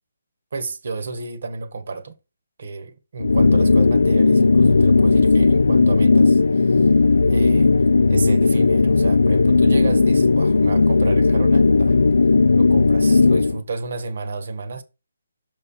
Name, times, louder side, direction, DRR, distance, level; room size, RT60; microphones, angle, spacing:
voice 1, 0.5-2.1 2.6-6.9 7.3-7.7 8.1-12.0 12.5-14.8, right 4 dB, 50° right, 1.3 m, -31 dB
sound 1, 3.2-13.6, left 3 dB, 85° left, 0.4 m, -16 dB
6.6 x 5.3 x 4.2 m
hypercardioid pair, 170°, 0 cm